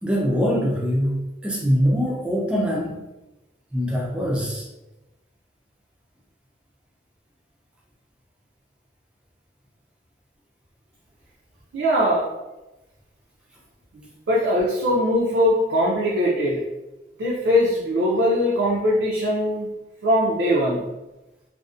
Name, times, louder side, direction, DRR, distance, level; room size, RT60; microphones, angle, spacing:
voice 1, 0.0-3.0 3.7-4.7, equal, 5° right, -3 dB, 0.4 m, -23 dB
voice 2, 11.7-12.3 13.9-16.7 17.2-19.7 20.0-20.9, equal, 85° right, -5 dB, 0.4 m, -21 dB
2.5 x 2.0 x 2.4 m, 1.0 s
head